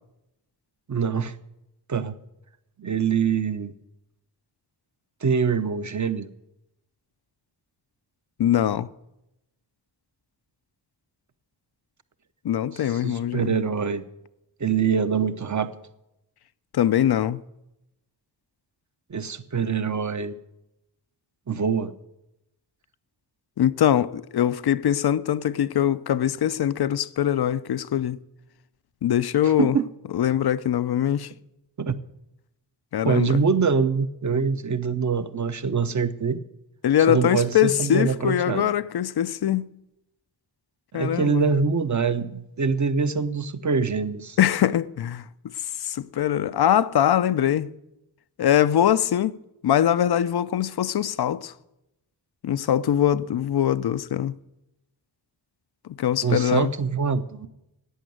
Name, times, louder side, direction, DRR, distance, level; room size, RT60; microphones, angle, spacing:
voice 1, 0.9-1.3 1.9-2.1 2.8-3.7 5.2-6.3 12.8-14.1 14.6-15.7 19.1-20.4 21.5-21.9 29.6-29.9 31.8-32.0 33.0-36.4 37.1-38.7 40.9-44.4 56.2-57.5, right 6 dB, 40° right, 0.9 m, -24 dB
voice 2, 8.4-8.9 12.4-13.5 16.7-17.4 23.6-28.2 29.0-29.8 30.1-31.3 32.9-33.4 36.8-39.6 40.9-41.5 44.4-45.2 45.8-47.7 48.4-49.4 49.6-51.5 52.4-54.4 55.8-56.7, left 10 dB, 60° left, 0.6 m, -22 dB
11.5 x 8.4 x 7.9 m
cardioid pair, 45°, 44 cm